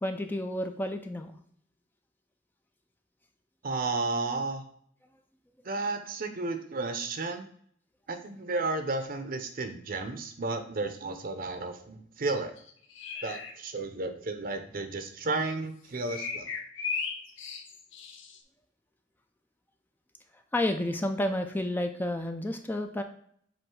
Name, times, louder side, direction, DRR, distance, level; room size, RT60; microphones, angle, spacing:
voice 1, 0.0-1.3 20.5-23.0, left 1 dB, 10° left, 5 dB, 0.4 m, -30 dB
voice 2, 3.6-4.6 5.6-7.5 8.1-12.5 13.2-16.5, right 3 dB, 50° right, 7 dB, 0.7 m, -33 dB
sound 1, 12.6-13.5 16.1-18.4, left 5 dB, 85° left, 0.9 m, -36 dB
7.7 x 2.6 x 4.7 m, 0.62 s
head